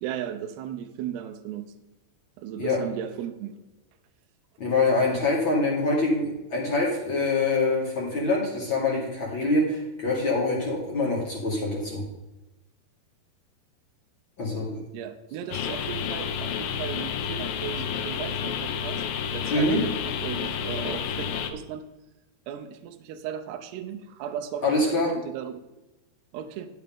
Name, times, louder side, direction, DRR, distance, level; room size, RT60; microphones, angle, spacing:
voice 1, 0.0-1.7 2.4-3.6 5.0-5.1 14.9-19.0 19.3-21.8 22.5-25.6 26.3-26.7, right 9 dB, 80° right, 7 dB, 2.7 m, -36 dB
voice 2, 4.6-12.0 14.4-14.8 19.5-19.8 24.6-25.1, left 2 dB, 40° left, -4 dB, 1.8 m, -25 dB
sound 1, 15.5-21.5, left 7 dB, 80° left, 2.1 m, -30 dB
11.0 x 7.8 x 3.5 m, 1.0 s
omnidirectional pair, 5.0 m